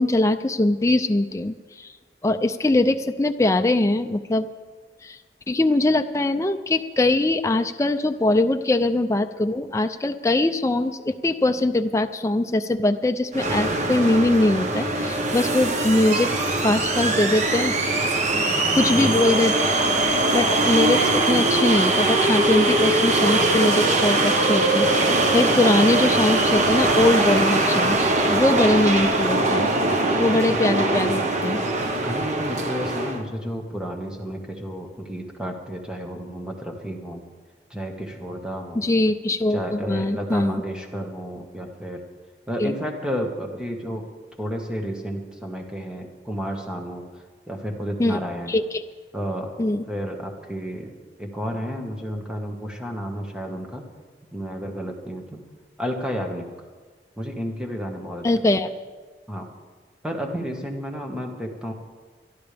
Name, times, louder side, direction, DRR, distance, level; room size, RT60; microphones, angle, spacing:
voice 1, 0.0-1.9 2.2-4.5 5.0-5.2 5.5-17.8 18.8-19.5 20.3-29.7 30.2-31.6 38.7-40.6 42.6-42.7 48.0-48.2 48.5-48.8 49.6-49.8 58.2-58.7, left 2 dB, 15° left, 7 dB, 0.4 m, -22 dB
sound 1, 13.3-33.2, right 2 dB, 40° right, 1.3 m, -21 dB
voice 2, 32.0-37.2 37.7-38.8 39.5-42.0 42.5-44.0 44.4-47.1 47.5-48.5 49.1-49.5 49.9-50.9 51.2-53.9 54.3-55.4 55.8-56.4 57.2-58.3 59.3-59.4 60.0-61.7, equal, 5° right, 1 dB, 1.6 m, -31 dB
23.0 x 12.5 x 3.5 m, 1.4 s
head